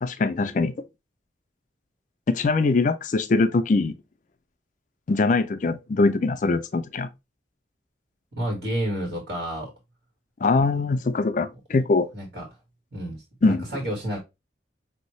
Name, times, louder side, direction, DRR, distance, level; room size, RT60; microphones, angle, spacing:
voice 1, 0.0-0.7 2.3-3.9 5.1-7.1 10.4-12.1 13.4-13.6, left 3 dB, 45° left, 0.4 m, -22 dB
voice 2, 8.4-9.7 12.1-12.5 12.9-14.2, equal, 70° right, 1.8 m, -30 dB
6.1 x 2.7 x 3.1 m
head